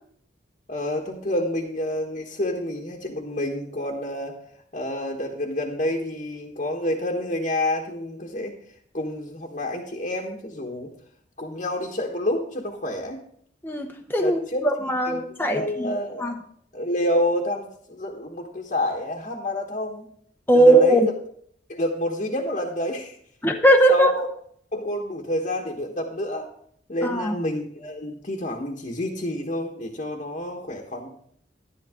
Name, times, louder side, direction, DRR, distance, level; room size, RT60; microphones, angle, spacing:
voice 1, 0.7-4.4 4.7-8.5 8.9-10.9 11.4-13.2 14.2-14.6 15.0-16.3 16.7-20.1 20.5-21.0 21.7-23.2 23.9-24.3 24.7-26.5 26.9-31.1, left 1 dB, 40° left, 0 dB, 1.3 m, -28 dB
voice 2, 13.6-15.9 16.2-16.3 20.5-21.1 23.4-24.1 27.0-27.3, right 1 dB, 10° left, 3 dB, 0.9 m, -19 dB
11.5 x 11.0 x 3.7 m, 0.64 s
head